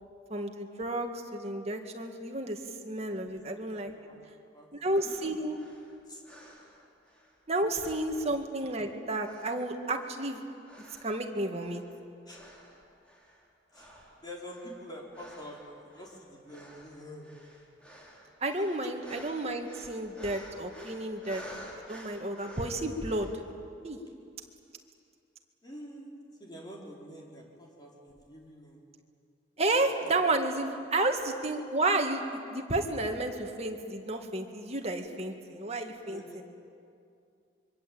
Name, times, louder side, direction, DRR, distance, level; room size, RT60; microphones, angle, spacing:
voice 1, 0.3-3.9 4.7-5.6 7.5-10.4 11.0-11.8 18.4-21.4 21.9-23.3 23.8-24.0 29.6-36.2, right 2 dB, 35° right, 4 dB, 2.0 m, -31 dB
voice 2, 3.7-4.2 4.5-4.7 5.0-5.6 6.1-6.2 7.6-7.7 12.3-12.5 13.7-17.4 18.6-18.9 25.6-26.1 26.4-28.8 29.6-29.7 30.0-30.2 34.6-34.7 36.0-36.4, equal, 25° left, -2 dB, 4.3 m, -47 dB
sound 1, 5.0-7.4 7.7-8.9 9.2-11.3 11.6-12.0 12.3-13.5 13.7-23.4, equal, 5° left, 4.4 m, -52 dB
26.0 x 24.0 x 8.8 m, 2.5 s
head